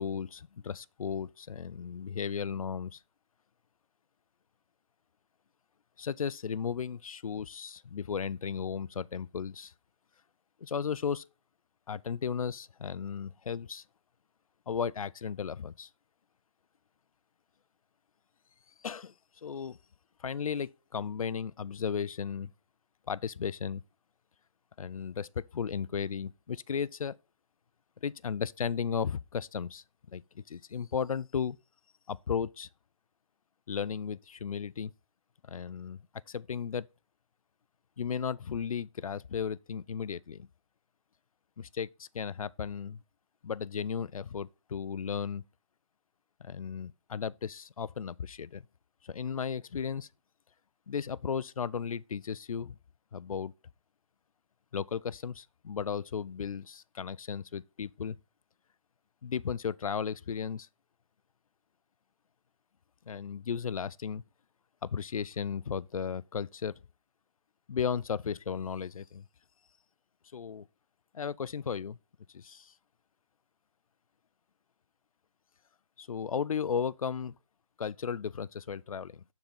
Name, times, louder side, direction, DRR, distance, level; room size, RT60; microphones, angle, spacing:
voice 1, 0.0-3.0 6.0-9.7 10.6-11.2 11.9-13.8 14.7-15.9 18.8-19.1 19.4-19.8 20.2-22.5 23.1-23.8 24.8-27.2 28.0-29.8 30.1-31.6 32.1-32.7 33.7-34.9 35.5-36.0 36.3-36.9 38.0-40.5 41.6-43.0 43.4-45.4 46.4-48.6 49.0-50.1 50.9-52.8 53.1-53.5 54.7-58.2 59.2-60.7 63.1-64.2 64.8-66.7 67.7-69.2 70.3-70.7 71.1-72.0 72.3-72.7 76.0-77.3 77.8-79.2, left 7 dB, 80° left, 0.5 m, -35 dB
11.5 x 3.9 x 5.5 m
hypercardioid pair, 165°, 18 cm